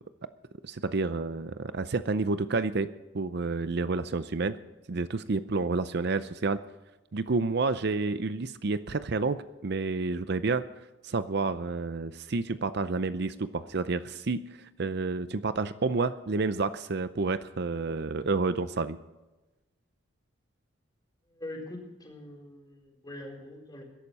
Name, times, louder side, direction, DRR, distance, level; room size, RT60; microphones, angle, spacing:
voice 1, 0.6-2.9 3.1-4.6 4.9-6.6 7.1-10.6 11.0-19.0, right 3 dB, 55° right, 13 dB, 0.6 m, -29 dB
voice 2, 21.3-23.8, left 1 dB, 20° left, 0 dB, 4.1 m, -43 dB
21.5 x 11.5 x 4.2 m, 1.1 s
head